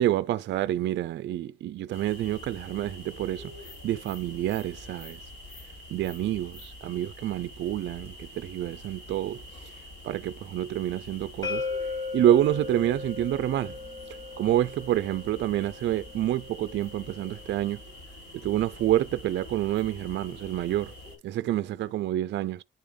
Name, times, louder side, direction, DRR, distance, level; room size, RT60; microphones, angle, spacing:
voice 1, 0.0-3.5 3.8-5.2 5.9-9.7 10.0-11.7 12.1-13.8 14.1-17.8 18.3-20.9 21.2-22.6, right 12 dB, 65° right, 0.4 m, -28 dB
sound 1, 1.9-21.2, left 1 dB, 65° left, 3.5 m, -46 dB
sound 2, 11.4-17.2, left 4 dB, 20° left, 1.3 m, -37 dB
9.3 x 3.5 x 3.6 m
cardioid pair, 90°, 20 cm